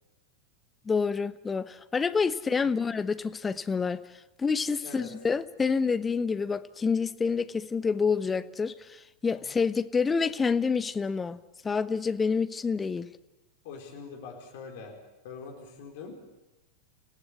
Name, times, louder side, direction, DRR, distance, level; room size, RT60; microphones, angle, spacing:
voice 1, 0.9-4.0 4.4-11.4 11.6-13.1, left 5 dB, 15° left, 13 dB, 0.9 m, -28 dB
voice 2, 13.6-14.9 15.2-16.2, left 5 dB, 50° left, 3 dB, 4.4 m, -43 dB
29.5 x 16.5 x 8.2 m, 1.0 s
figure-of-eight pair, 90°, 0 cm